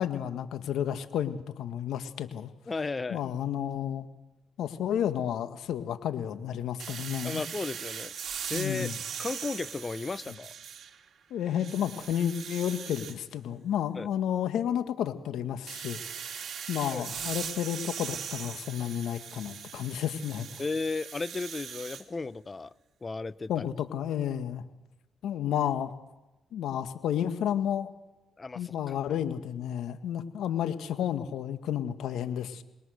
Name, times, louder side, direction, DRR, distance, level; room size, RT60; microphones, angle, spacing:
voice 1, 0.0-2.5 3.1-4.1 4.6-7.4 8.5-9.0 11.3-20.6 23.5-24.6 25.2-25.9 26.5-27.9 28.5-32.6, left 10 dB, 75° left, 1.8 m, -31 dB
voice 2, 2.7-3.2 7.2-8.1 8.5-8.9 9.2-10.5 13.9-14.1 16.9-17.1 20.6-22.7 23.0-23.6 28.4-28.7 29.1-29.2, left 3 dB, 30° left, 0.9 m, -34 dB
sound 1, 6.8-11.1 11.5-13.2 15.7-22.0, right 8 dB, 60° right, 2.2 m, -40 dB
26.5 x 21.0 x 6.6 m
supercardioid pair, 60°, 0 cm